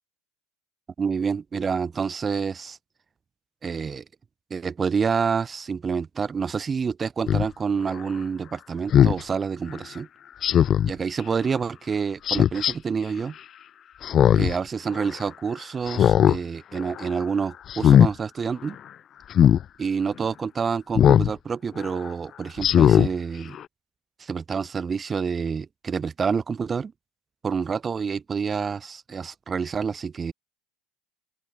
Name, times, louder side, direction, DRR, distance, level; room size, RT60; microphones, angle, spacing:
voice 1, 1.0-2.8 3.6-4.0 4.5-10.1 10.8-13.4 14.3-18.8 19.8-23.6 24.2-26.9 27.4-30.3, right 6 dB, 25° right, 5.6 m, -28 dB
Speech synthesizer, 7.3-7.5 8.9-9.2 10.4-10.9 12.3-12.7 14.0-14.6 14.9-15.0 15.9-16.4 16.8-17.1 17.7-18.1 19.3-19.6 21.0-21.3 21.8-21.9 22.6-23.1 23.5-23.6, left 9 dB, 40° left, 1.0 m, -17 dB
open air
figure-of-eight pair, 75°, 0 cm